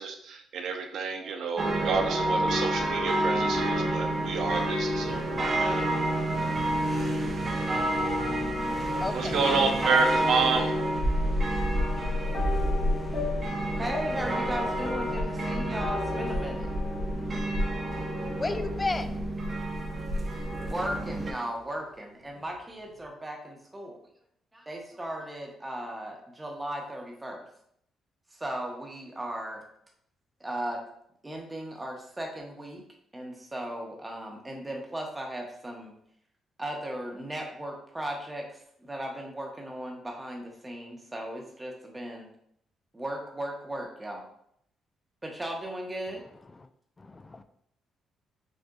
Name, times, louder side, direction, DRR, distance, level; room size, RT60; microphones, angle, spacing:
voice 1, 0.0-5.8 9.1-10.7, right 4 dB, 70° right, 4 dB, 0.6 m, -29 dB
sound 1, 1.6-21.3, right 1 dB, 35° right, 0.8 m, -29 dB
voice 2, 9.0-9.7 18.1-19.1 46.6-46.7 47.0-47.4, left 3 dB, 25° left, 9 dB, 0.4 m, -33 dB
sound 2, 11.7-21.3 21.6-22.0 22.3-22.4, left 4 dB, 65° left, 1.0 m, -39 dB
voice 3, 13.7-16.7 20.4-24.0 24.5-27.4 28.3-29.6 30.4-30.8 31.2-32.8 33.1-35.9 36.6-42.3 42.9-44.2 45.2-46.2, right 1 dB, 15° right, 0 dB, 1.1 m, -37 dB
6.3 x 2.7 x 2.4 m, 0.69 s
cardioid pair, 90°, 0 cm